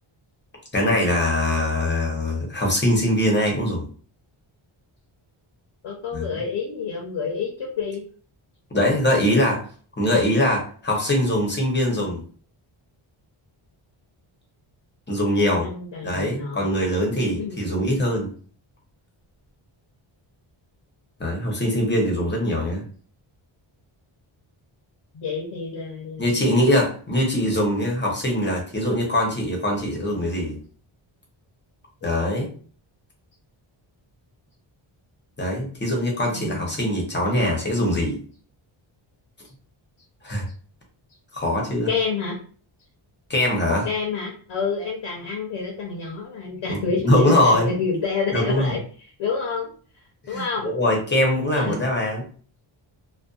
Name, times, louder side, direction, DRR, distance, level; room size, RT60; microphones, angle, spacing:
voice 1, 0.7-3.9 6.1-6.3 8.7-9.6 10.0-12.2 15.1-15.7 16.0-18.3 21.2-22.8 26.2-30.6 32.0-32.5 35.4-38.2 40.2-40.4 41.3-41.9 43.3-43.9 46.7-47.7 48.3-48.7 50.3-52.2, left 1 dB, 20° left, -1 dB, 0.7 m, -22 dB
voice 2, 5.8-8.0 15.6-16.8 17.4-17.5 25.1-26.4 36.2-36.8 41.9-42.4 43.8-48.8 49.2-49.7 50.3-50.7 51.5-51.8, left 5 dB, 65° left, 0 dB, 0.7 m, -28 dB
2.6 x 2.2 x 2.3 m, 0.43 s
wide cardioid pair, 150°, 50 cm